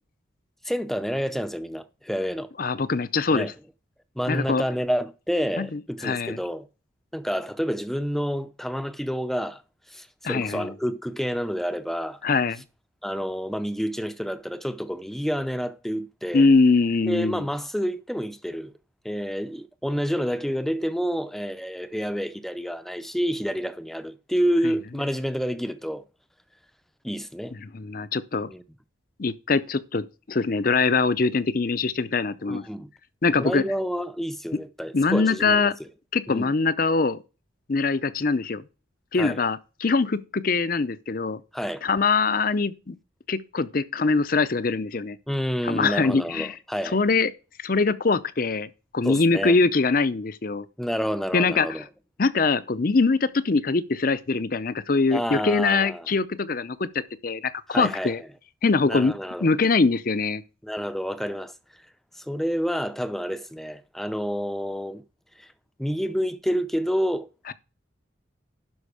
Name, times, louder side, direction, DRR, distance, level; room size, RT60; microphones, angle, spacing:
voice 1, 0.6-2.5 3.3-3.5 4.2-6.7 7.1-9.6 9.9-12.2 13.0-16.5 17.1-18.7 19.0-26.0 27.0-27.6 28.5-28.6 32.5-32.9 33.4-35.9 36.3-36.5 39.2-39.4 41.5-41.8 45.3-47.0 49.0-49.6 50.8-51.8 55.1-56.1 57.7-58.1 58.8-59.5 60.6-61.5 62.2-65.0 65.4-65.5 65.8-67.3, equal, ahead, 0.6 m, -29 dB
voice 2, 2.6-3.5 4.3-4.6 5.6-6.4 10.2-10.7 12.2-12.6 16.3-17.5 24.6-24.7 27.5-28.5 29.2-32.6 33.2-33.6 34.9-35.7 36.1-37.2 37.7-38.6 39.1-41.4 41.8-43.0 43.3-45.2 45.6-46.5 46.9-47.3 47.6-50.7 51.3-51.8 52.2-56.9 57.2-58.2 58.6-59.1 59.4-60.4 67.5-67.6, left 4 dB, 45° left, 0.6 m, -23 dB
12.0 x 5.3 x 4.9 m
head